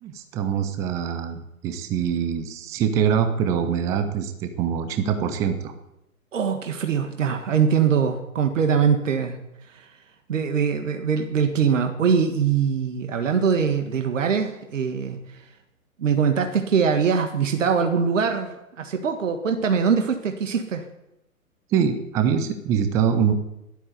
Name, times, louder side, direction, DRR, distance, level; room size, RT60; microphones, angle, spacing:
voice 1, 0.0-5.7 21.7-23.3, right 7 dB, 5° right, 8 dB, 0.5 m, -24 dB
voice 2, 6.3-9.4 9.7-9.9 10.3-15.4 16.0-18.5 18.8-20.9, right 6 dB, 60° right, 6 dB, 1.7 m, -22 dB
12.5 x 12.0 x 8.3 m, 0.89 s
figure-of-eight pair, 115°, 43 cm